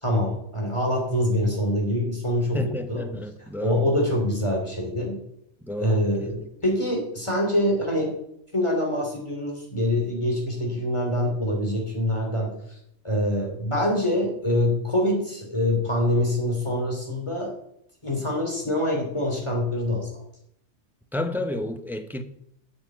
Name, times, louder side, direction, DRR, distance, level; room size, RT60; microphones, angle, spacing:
voice 1, 0.0-3.0 3.6-5.2 5.8-8.1 8.5-12.5 13.0-17.5 18.0-20.2, left 1 dB, 25° left, 3.0 m, -25 dB
voice 2, 2.5-4.0 5.6-6.5 21.1-22.2, left 1 dB, ahead, 0.8 m, -31 dB
8.2 x 7.7 x 8.8 m
omnidirectional pair, 1.2 m